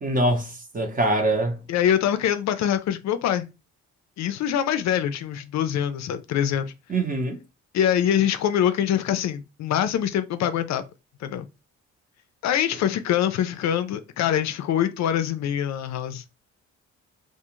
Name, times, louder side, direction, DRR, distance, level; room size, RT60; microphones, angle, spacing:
voice 1, 0.0-1.6 6.9-7.4, right 1 dB, 30° right, 0.9 m, -24 dB
voice 2, 1.7-3.5 4.2-6.7 7.7-10.8 11.2-11.5 12.4-16.2, left 10 dB, 65° left, 0.4 m, -24 dB
2.4 x 2.3 x 3.0 m
cardioid pair, 90°, 30 cm